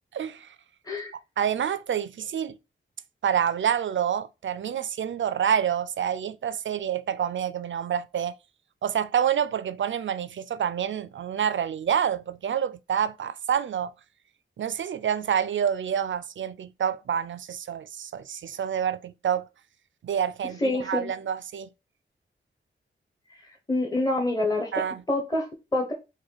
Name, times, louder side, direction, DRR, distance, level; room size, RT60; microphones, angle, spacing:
voice 1, 0.1-0.5 1.4-2.6 3.2-8.3 8.8-13.9 14.6-19.4 20.0-21.7 24.7-25.0, right 8 dB, 65° right, 0.4 m, -27 dB
voice 2, 20.6-21.1 23.3-23.4 23.7-24.7 25.1-25.9, left 2 dB, 20° left, 0.9 m, -26 dB
4.8 x 2.3 x 3.9 m
wide cardioid pair, 85°, 21 cm